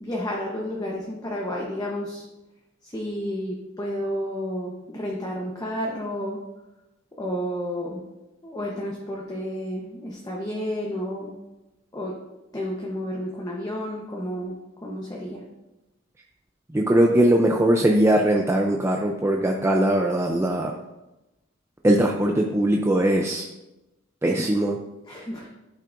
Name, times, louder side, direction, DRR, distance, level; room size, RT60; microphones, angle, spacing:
voice 1, 0.0-2.2 2.8-6.4 7.2-8.0 8.4-11.3 11.9-12.1 12.5-14.5 14.8-15.4 25.0-25.5, equal, 20° left, -3 dB, 0.9 m, -31 dB
voice 2, 16.7-20.8 21.8-23.5 24.2-24.8, right 1 dB, 15° right, 1 dB, 0.5 m, -20 dB
12.0 x 5.6 x 2.6 m, 1.0 s
head